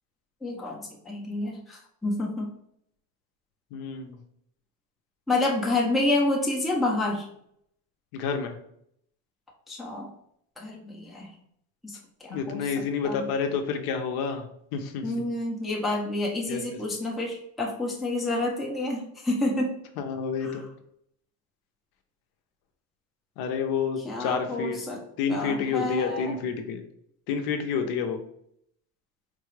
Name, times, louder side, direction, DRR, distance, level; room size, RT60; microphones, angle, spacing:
voice 1, 0.4-2.5 5.3-7.3 9.7-10.1 10.6-11.3 11.8-13.2 15.0-19.8 20.4-20.6 24.0-25.0 25.3-26.4, left 2 dB, ahead, -2 dB, 0.5 m, -29 dB
voice 2, 3.7-4.2 8.1-8.6 12.3-14.5 14.7-15.3 16.5-16.6 20.0-20.7 23.4-24.8 25.2-26.8 27.3-28.2, left 6 dB, 60° left, 6 dB, 0.6 m, -29 dB
3.9 x 2.3 x 3.1 m, 0.71 s
supercardioid pair, 125°, 42 cm